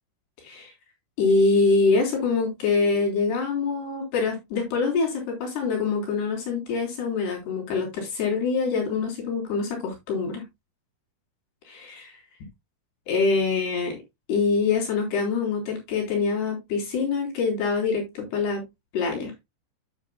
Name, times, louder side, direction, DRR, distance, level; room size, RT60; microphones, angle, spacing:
voice 1, 1.2-10.4 11.7-12.2 13.1-14.0 14.3-18.6 18.9-19.3, left 4 dB, 90° left, 6.0 m, -25 dB
11.5 x 7.6 x 2.2 m
omnidirectional pair, 4.5 m